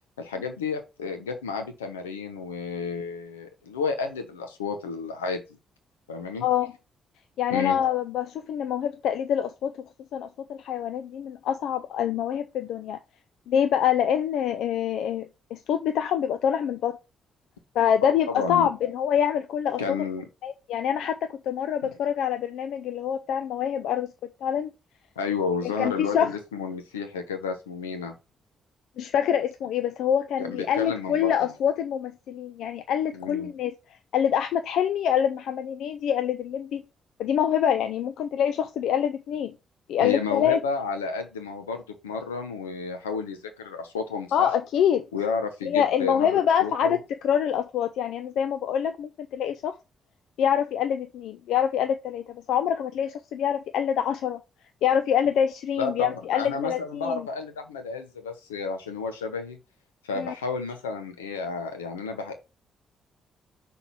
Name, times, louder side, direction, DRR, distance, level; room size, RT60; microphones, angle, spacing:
voice 1, 0.2-5.4 6.1-6.5 7.5-7.8 18.0-18.7 19.8-20.2 21.8-21.9 25.2-28.1 30.4-31.5 33.1-33.5 40.0-44.5 45.1-47.0 55.8-59.6 60.0-62.3, left 5 dB, 90° left, 1.0 m, -31 dB
voice 2, 6.4-6.7 7.4-9.7 10.1-13.0 13.5-15.3 15.5-17.0 17.7-20.0 20.4-24.1 24.4-24.7 25.8-26.3 29.0-33.7 34.1-36.8 37.2-39.5 39.9-40.6 44.3-45.0 45.7-49.7 50.4-54.4 54.8-57.3 60.2-60.3, left 9 dB, 70° left, 0.5 m, -25 dB
6.0 x 3.8 x 5.9 m
hypercardioid pair, 45°, 0 cm